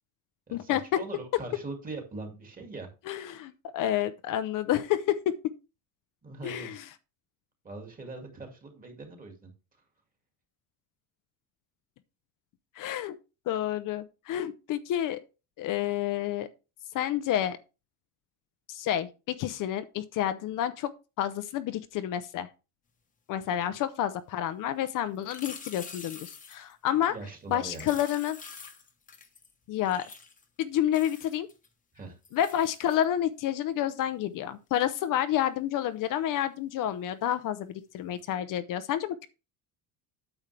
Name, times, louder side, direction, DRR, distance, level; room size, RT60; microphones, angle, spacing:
voice 1, 0.5-3.3 6.2-6.8 7.6-9.5 23.6-23.8 27.1-28.0 31.9-32.2, right 3 dB, 20° right, 2.2 m, -42 dB
voice 2, 3.1-5.3 6.4-6.8 12.8-13.2 13.5-15.2 15.6-16.5 16.9-17.6 18.7-20.9 21.2-22.5 23.3-27.1 27.5-28.4 29.7-30.0 30.6-31.5 32.3-39.3, left 11 dB, 55° left, 0.7 m, -29 dB
sound 1, 25.2-26.7 27.7-29.5 29.8-30.4 30.9-31.7 32.2-33.0 38.2-38.3, left 5 dB, 20° left, 1.1 m, -46 dB
9.0 x 7.1 x 3.3 m
cardioid pair, 155°, 38 cm